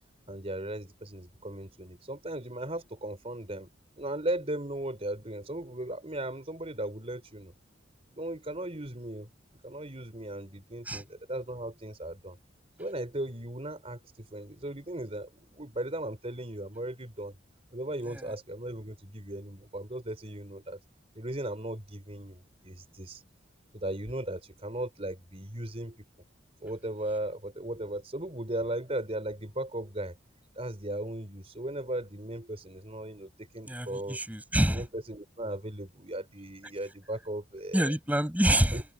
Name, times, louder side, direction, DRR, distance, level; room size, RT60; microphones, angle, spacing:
voice 1, 0.3-3.7 4.0-7.5 8.1-9.3 9.6-12.4 12.8-17.4 17.7-20.8 21.1-23.2 23.7-26.0 26.6-30.2 30.6-34.2 34.7-37.9 38.7-38.8, right 1 dB, 30° right, 4.1 m, -37 dB
voice 2, 33.7-34.8 37.7-38.8, right 1 dB, 10° right, 6.3 m, -27 dB
open air
head